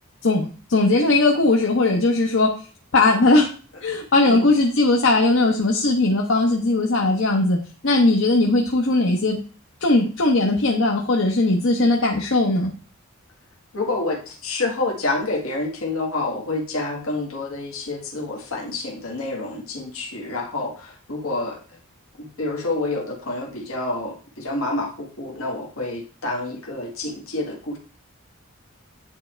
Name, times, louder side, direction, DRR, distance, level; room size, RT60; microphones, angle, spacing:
voice 1, 0.2-2.5 2.9-3.5 3.8-7.6 7.8-9.4 9.8-12.7, left 2 dB, 65° left, 1 dB, 0.9 m, -19 dB
voice 2, 13.7-21.6 22.2-27.8, left 2 dB, 80° left, 0 dB, 1.6 m, -28 dB
9.5 x 3.3 x 4.4 m, 0.38 s
head